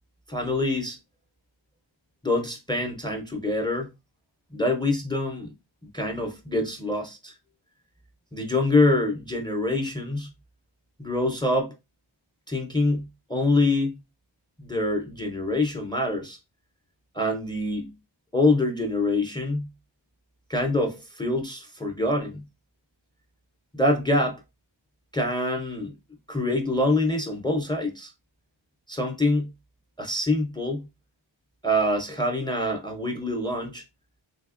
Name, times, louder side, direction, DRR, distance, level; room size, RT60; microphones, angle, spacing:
voice 1, 0.3-1.0 2.2-3.9 4.5-5.5 5.9-7.3 8.3-10.3 11.0-11.7 12.5-14.0 14.6-16.4 17.1-17.9 18.3-19.7 20.5-22.4 23.7-24.4 25.1-25.9 26.3-28.1 28.9-29.5 30.0-30.9 31.6-33.8, left 2 dB, 10° left, 0.5 m, -25 dB
3.4 x 2.7 x 2.4 m
wide cardioid pair, 115°, 47 cm